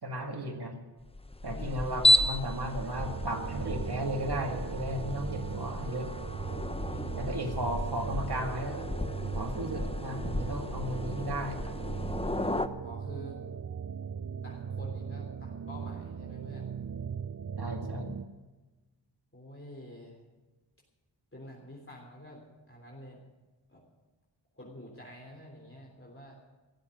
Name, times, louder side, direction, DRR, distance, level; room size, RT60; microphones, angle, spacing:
voice 1, 0.0-0.7 1.4-6.1 7.2-8.9 9.2-11.6 17.6-18.1, right 1 dB, 60° right, 2 dB, 2.2 m, -35 dB
sound 1, 1.1-12.7, left 1 dB, 15° left, 0.8 m, -32 dB
voice 2, 1.5-1.9 6.8-7.2 12.8-13.4 14.4-16.8 19.3-20.2 21.3-22.4 22.7-23.2 23.7-23.8 24.5-26.4, equal, 30° left, -3 dB, 3.5 m, -48 dB
sound 2, 2.9-18.3, right 6 dB, 40° right, 0.6 m, -39 dB
16.5 x 7.6 x 9.2 m, 1.2 s
wide cardioid pair, 45°, 43 cm